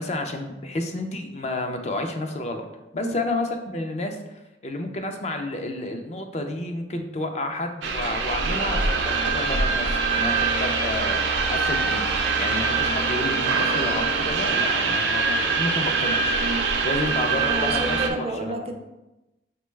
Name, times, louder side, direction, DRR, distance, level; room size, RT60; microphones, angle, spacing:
voice 1, 0.0-2.6 2.9-4.2 4.6-16.4 16.8-18.7, left 2 dB, 35° left, 5 dB, 0.4 m, -30 dB
sound 1, 7.8-18.1, right 4 dB, 90° right, 0.5 m, -24 dB
voice 2, 17.5-18.7, right 2 dB, 35° right, 4 dB, 0.4 m, -30 dB
5.9 x 2.2 x 3.1 m, 0.99 s
head